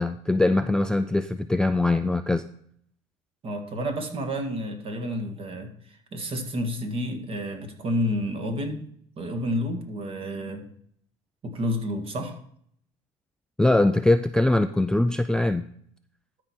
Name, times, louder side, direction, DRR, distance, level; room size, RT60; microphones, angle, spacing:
voice 1, 0.0-2.4 13.6-15.7, left 2 dB, 5° left, 10 dB, 0.3 m, -22 dB
voice 2, 3.4-8.9 9.2-10.7 11.4-12.4, equal, 40° right, 4 dB, 1.8 m, -30 dB
13.0 x 4.9 x 4.4 m, 0.63 s
supercardioid pair, 95°, 15 cm